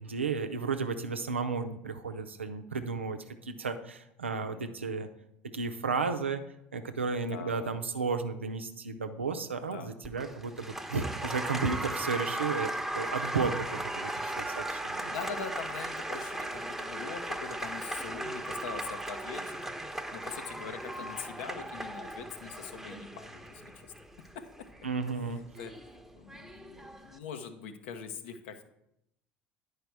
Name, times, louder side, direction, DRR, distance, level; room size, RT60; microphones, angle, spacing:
voice 1, 0.0-5.1 5.5-6.4 6.7-15.1 24.8-25.4, right 4 dB, 90° right, 7 dB, 0.6 m, -33 dB
voice 2, 4.3-4.8 7.3-7.7 9.6-9.9 15.1-19.6 20.1-23.9 24.3-24.4 25.3-28.6, left 6 dB, 70° left, 7 dB, 1.0 m, -43 dB
Applause, 10.0-27.2, right 1 dB, 5° right, 0.9 m, -37 dB
10.0 x 4.9 x 4.7 m, 0.79 s
figure-of-eight pair, 65°, 6 cm